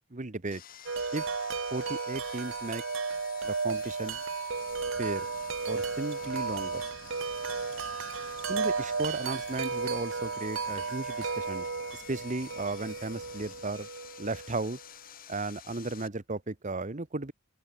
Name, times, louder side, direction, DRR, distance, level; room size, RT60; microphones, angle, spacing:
voice 1, 0.1-0.6 1.1-1.3 1.7-2.8 3.4-4.2 5.0-5.3 5.7-6.8 8.5-11.7 12.1-13.9 14.2-14.8 15.3-17.3, right 2 dB, 40° right, 1.2 m, -35 dB
Sawing, 0.5-16.1, left 10 dB, 45° left, 1.7 m, -50 dB
Wind chime, 0.9-14.8, right 4 dB, 70° right, 1.2 m, -34 dB
Wind, 4.5-13.7, left 4 dB, 70° left, 2.6 m, -55 dB
open air
head